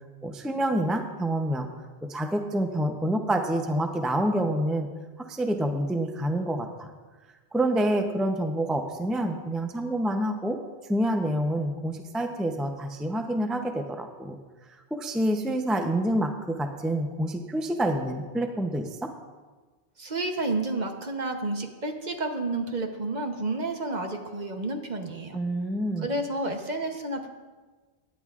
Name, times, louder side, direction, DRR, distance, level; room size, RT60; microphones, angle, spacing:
voice 1, 0.2-1.7 2.0-4.9 5.2-6.9 7.5-10.6 10.9-14.4 14.9-19.1 25.3-26.1, right 1 dB, ahead, 5 dB, 0.5 m, -27 dB
voice 2, 20.0-25.4 26.0-27.3, right 2 dB, 45° right, 4 dB, 1.0 m, -30 dB
17.5 x 10.5 x 2.4 m, 1.3 s
omnidirectional pair, 1.1 m